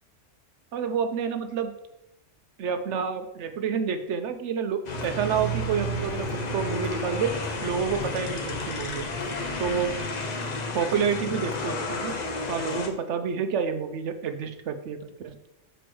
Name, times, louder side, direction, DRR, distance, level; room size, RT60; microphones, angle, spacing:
voice 1, 0.7-1.7 2.6-7.4 7.6-9.1 9.6-9.9 10.7-12.2 12.5-15.0 15.2-15.4, right 6 dB, 75° right, 8 dB, 1.0 m, -29 dB
sound 1, 4.9-12.9, left 3 dB, 40° left, 0.8 m, -32 dB
sound 2, 4.9-10.0, right 7 dB, 15° right, 1.6 m, -37 dB
6.1 x 4.5 x 4.6 m, 0.86 s
omnidirectional pair, 1.3 m